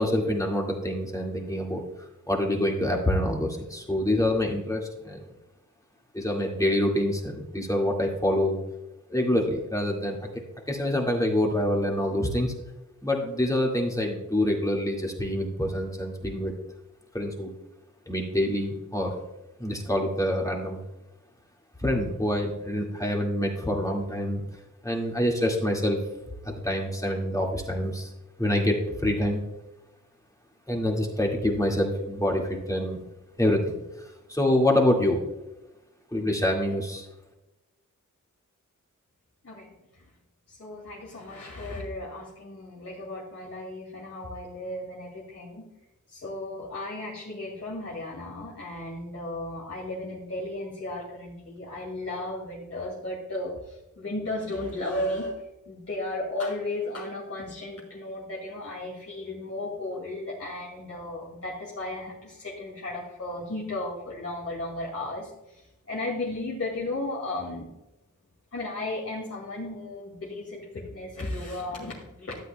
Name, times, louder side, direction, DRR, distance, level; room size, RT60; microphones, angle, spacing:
voice 1, 0.0-1.8 2.3-5.2 6.1-8.6 9.1-10.2 10.7-12.5 13.0-16.5 17.1-17.5 18.1-19.1 19.6-20.8 21.8-24.4 24.8-26.0 26.4-28.1 28.4-29.4 30.7-33.0 33.4-35.2 36.1-37.1, left 1 dB, 10° left, -1 dB, 2.1 m, -26 dB
voice 2, 39.4-40.1 40.5-45.7 46.1-67.7 68.5-72.4, left 2 dB, 50° left, -4 dB, 2.2 m, -35 dB
13.0 x 8.1 x 2.3 m, 0.98 s
cardioid pair, 60°, 32 cm